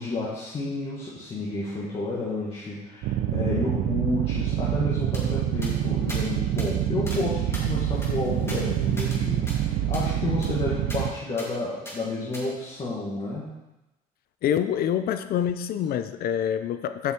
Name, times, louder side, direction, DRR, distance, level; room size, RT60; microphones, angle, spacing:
voice 1, 0.0-13.5, left 2 dB, 35° left, -7 dB, 1.9 m, -31 dB
sound 1, 3.0-11.1, right 11 dB, 85° right, 0.7 m, -26 dB
sound 2, 5.1-5.2 5.6-5.7 6.1-6.2 6.6-6.7 7.1-7.2 7.5-9.2 9.5-9.6 9.9-10.1 10.4-10.5 10.9-11.0 11.4-11.5 11.9-12.0 12.3-12.4, left 1 dB, 15° left, 2.3 m, -40 dB
voice 2, 14.4-17.1, left 9 dB, 65° left, 11 dB, 0.6 m, -26 dB
7.5 x 6.0 x 4.5 m, 0.98 s
cardioid pair, 110°, 17 cm